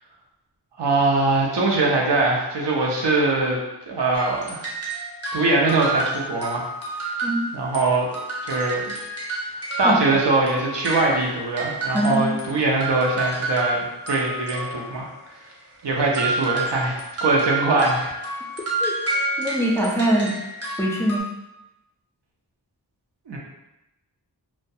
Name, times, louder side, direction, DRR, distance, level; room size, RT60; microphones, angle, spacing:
voice 1, 0.8-3.6 3.9-4.6 5.3-6.7 7.0-7.2 7.5-8.1 8.4-9.0 9.8-15.1 15.8-18.1 23.3-23.4, right 2 dB, 80° right, -2 dB, 0.6 m, -22 dB
sound 1, 4.1-7.8 8.1-12.5 12.8-15.1 16.1-21.2, right 2 dB, 35° right, 0.6 m, -29 dB
voice 2, 7.2-7.5 9.8-10.3 11.9-12.4 18.8-18.9 19.4-20.3 20.8-21.2, right 1 dB, 5° left, -3 dB, 0.3 m, -23 dB
2.2 x 2.1 x 2.6 m, 0.95 s
wide cardioid pair, 75°, 42 cm